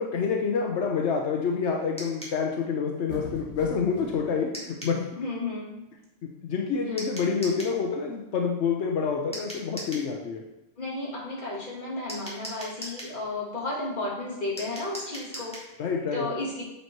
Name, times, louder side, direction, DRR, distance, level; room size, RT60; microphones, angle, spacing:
voice 1, 0.0-5.1 6.4-10.4 15.8-16.2, left 5 dB, 90° left, 0 dB, 1.1 m, -27 dB
sound 1, 2.0-2.4 4.5-5.0 7.0-7.8 9.3-10.1 12.1-13.2 14.6-15.7, equal, 5° left, 1.8 m, -39 dB
sound 2, 3.1-4.2, equal, 20° right, 2.0 m, -39 dB
voice 2, 5.2-5.8 10.8-15.6 16.1-16.5, left 2 dB, 45° left, -7 dB, 2.7 m, -33 dB
8.1 x 4.5 x 4.5 m, 0.92 s
omnidirectional pair, 1.1 m